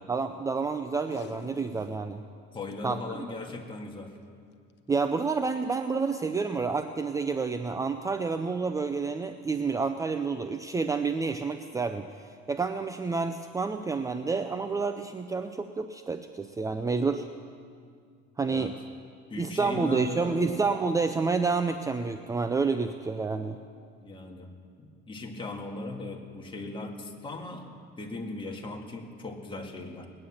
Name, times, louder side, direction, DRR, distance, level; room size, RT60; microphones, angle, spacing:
voice 1, 0.1-2.2 2.8-3.0 4.9-12.1 12.5-17.3 18.4-18.7 19.4-23.6, right 4 dB, 15° right, 7 dB, 0.5 m, -29 dB
Packing tape duct tape, 0.9-2.1 2.4-2.7 3.4-3.7 4.7-4.9 5.5-5.6, left 8 dB, 60° left, 1.0 m, -46 dB
voice 2, 2.5-4.2 18.4-18.7 19.3-20.5 24.0-24.5 24.8-30.1, left 2 dB, 25° left, 2 dB, 1.9 m, -38 dB
20.0 x 9.7 x 7.2 m, 2.2 s
cardioid pair, 115°, 21 cm